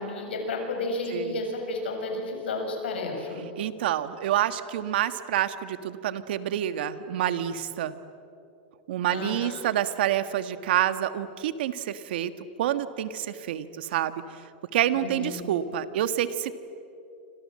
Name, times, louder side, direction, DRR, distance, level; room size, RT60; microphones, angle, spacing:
voice 1, 0.0-3.5 9.1-9.6 14.9-15.5, left 2 dB, 90° left, 3 dB, 7.3 m, -32 dB
voice 2, 3.6-7.9 8.9-12.3 12.6-14.2 14.7-16.5, right 11 dB, 70° right, 12 dB, 1.6 m, -28 dB
29.0 x 26.5 x 7.7 m, 2.7 s
hypercardioid pair, 125°, 6 cm